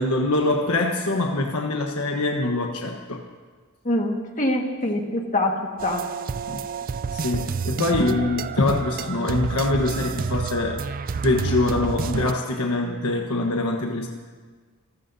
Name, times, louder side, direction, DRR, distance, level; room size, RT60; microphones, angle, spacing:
voice 1, 0.0-3.2 6.5-6.6 7.1-10.8 11.2-14.1, left 2 dB, 85° left, 2 dB, 1.2 m, -24 dB
voice 2, 3.8-6.1, left 1 dB, 35° left, 2 dB, 1.7 m, -24 dB
sound 1, 5.8-12.3, right 5 dB, 40° right, 0.4 m, -29 dB
26.5 x 14.0 x 2.7 m, 1.5 s
head